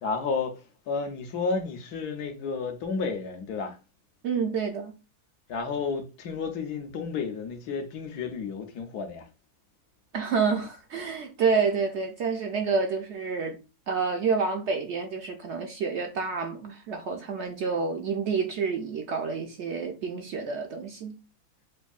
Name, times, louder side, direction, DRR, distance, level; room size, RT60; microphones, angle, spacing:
voice 1, 0.0-3.8 5.5-9.3 17.5-17.6, left 4 dB, 85° left, 1.4 m, -32 dB
voice 2, 4.2-4.9 10.1-13.6 13.9-21.1, right 5 dB, 65° right, 0.7 m, -28 dB
6.2 x 2.6 x 2.4 m
omnidirectional pair, 1.6 m